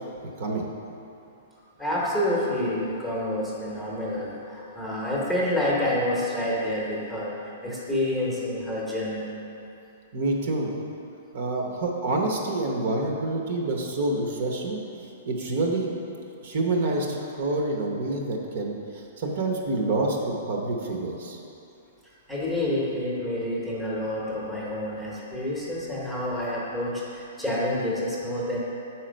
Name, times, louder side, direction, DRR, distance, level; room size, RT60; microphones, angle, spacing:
voice 1, 1.8-7.4 7.6-9.3 22.3-28.6, left 1 dB, ahead, -6 dB, 0.9 m, -28 dB
voice 2, 10.1-10.7 11.3-14.8 15.2-15.9 16.4-18.7 19.2-21.4, right 2 dB, 45° right, 1 dB, 0.8 m, -27 dB
8.0 x 4.4 x 5.1 m, 2.8 s
hypercardioid pair, 170°, 0 cm